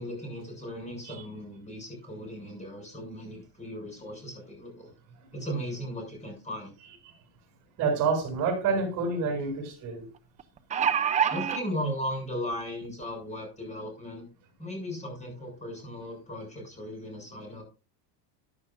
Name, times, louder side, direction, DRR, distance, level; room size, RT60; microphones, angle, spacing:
voice 1, 0.0-4.9 5.3-6.7 11.3-14.3 14.6-17.6, equal, 15° left, 6.9 m, -37 dB
voice 2, 7.8-10.1, right 4 dB, 35° right, 7.3 m, -28 dB
sound 1, 8.3-8.4 8.7-8.8 10.4-11.6 12.5-12.6 13.0-13.1, right 8 dB, 15° right, 0.4 m, -26 dB
14.5 x 11.0 x 2.5 m
cardioid pair, 155°, 50 cm